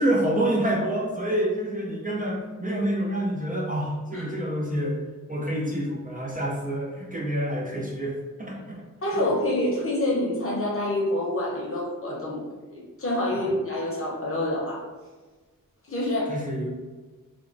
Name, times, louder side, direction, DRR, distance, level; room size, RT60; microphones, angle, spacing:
voice 1, 0.0-5.0 5.3-8.8 13.4-13.5 16.3-16.7, right 1 dB, 25° right, -3 dB, 0.4 m, -27 dB
voice 2, 9.0-12.4 12.7-14.9 15.8-16.3, left 1 dB, 40° left, -4 dB, 0.7 m, -27 dB
3.0 x 2.1 x 2.5 m, 1.3 s
wide cardioid pair, 125°, 33 cm